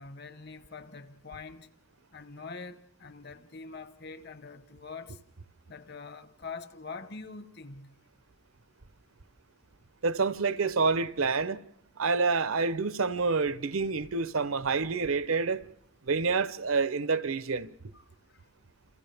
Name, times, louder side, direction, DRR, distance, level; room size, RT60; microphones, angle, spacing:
voice 1, 0.0-1.7 2.1-5.2 5.7-8.0 17.9-18.5, left 4 dB, 50° left, 1.1 m, -44 dB
voice 2, 10.0-11.6 12.0-15.6 16.0-17.7, right 4 dB, 80° right, 0.8 m, -28 dB
29.0 x 28.0 x 3.5 m
head